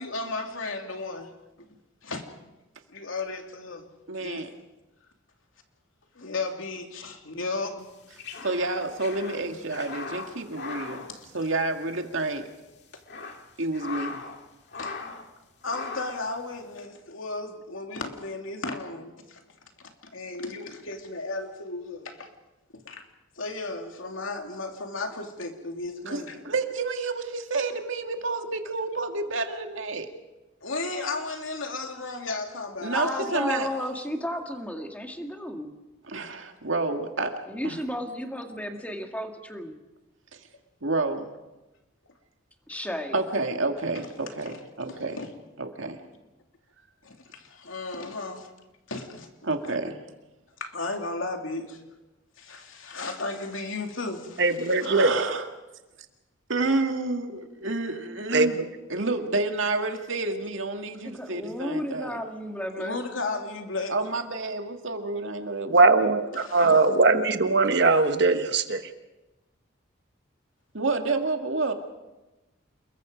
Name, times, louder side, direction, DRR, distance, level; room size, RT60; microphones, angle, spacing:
voice 1, 0.0-1.3 1.6-1.7 2.0-2.3 2.9-3.9 4.2-4.5 6.1-7.9 8.3-8.4 11.1-11.3 14.7-15.0 15.6-19.4 20.1-22.3 22.7-23.0 23.4-26.4 30.6-33.6 44.5-44.6 44.9-45.3 47.0-48.5 48.9-49.3 50.6-51.9 52.4-54.9 62.8-64.1 66.4-66.7, left 3 dB, 80° left, 3 dB, 2.8 m, -34 dB
voice 2, 4.1-4.5 8.4-11.0 11.3-12.4 13.6-14.2 26.1-30.1 32.8-33.7 36.1-37.4 37.6-37.8 40.8-41.3 43.1-45.2 45.6-46.0 49.4-50.0 54.8-55.5 56.5-58.6 58.9-62.2 63.9-66.1 66.6-67.0 70.7-71.7, right 3 dB, 75° right, 5 dB, 2.1 m, -29 dB
sound 1, 7.9-12.0 12.2-12.3 12.8-14.4 14.7-15.3 15.6-16.3, left 4 dB, 55° left, 2.3 m, -39 dB
voice 3, 32.9-35.8 37.5-39.8 42.7-43.2 60.6-60.7 61.0-63.0, equal, 5° left, 4 dB, 2.0 m, -33 dB
voice 4, 54.4-55.1 58.3-58.7 65.7-68.8, right 3 dB, 55° right, 8 dB, 1.3 m, -20 dB
28.5 x 21.5 x 5.2 m, 1.1 s
head